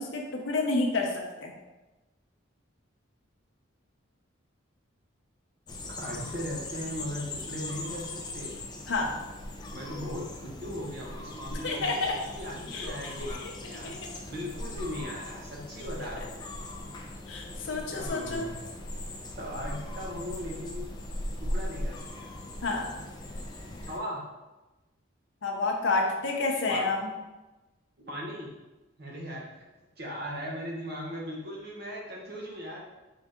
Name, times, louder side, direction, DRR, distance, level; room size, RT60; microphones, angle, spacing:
voice 1, 0.0-1.5 8.9-9.2 11.6-12.1 12.7-13.3 13.8-14.0 17.3-18.5 22.6-22.9 25.4-27.1, left 3 dB, 65° left, 0 dB, 0.6 m, -29 dB
sound 1, 5.7-24.0, left 1 dB, 20° left, 0.4 m, -39 dB
voice 2, 6.0-8.6 9.7-11.9 12.3-13.9 14.3-16.5 17.9-18.6 19.4-20.9 21.4-22.4 23.9-24.2 26.7-26.9 28.0-28.5 29.0-29.7 30.0-32.9, equal, 50° right, -2 dB, 1.0 m, -38 dB
3.9 x 3.7 x 3.5 m, 1.1 s
head